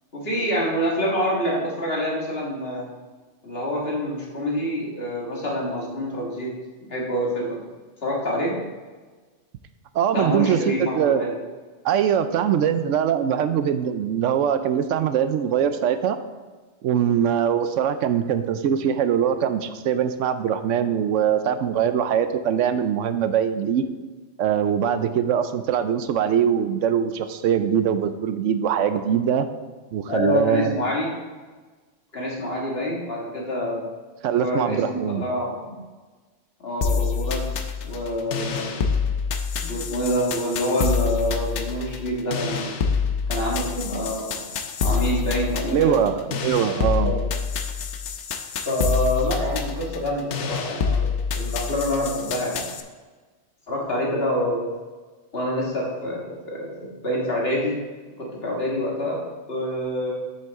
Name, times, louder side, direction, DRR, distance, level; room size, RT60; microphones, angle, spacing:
voice 1, 0.1-2.9 3.4-6.5 6.9-7.6 8.0-8.5 10.1-11.3 30.1-31.1 32.1-33.9 34.4-35.7 36.6-37.5 37.8-38.8 39.6-42.7 43.3-44.4 44.8-46.0 47.0-47.2 48.7-51.0 51.3-52.6 53.7-54.6 55.3-57.7 58.2-59.2 59.5-60.1, equal, 55° left, -3 dB, 2.0 m, -26 dB
voice 2, 9.9-11.2 11.8-16.2 16.8-23.8 24.4-29.5 29.9-30.8 34.2-35.3 45.7-47.1, right 8 dB, 85° right, 10 dB, 0.9 m, -22 dB
sound 1, 36.8-52.8, left 5 dB, 75° left, 1.0 m, -27 dB
7.9 x 7.0 x 3.6 m, 1.3 s
omnidirectional pair, 1.3 m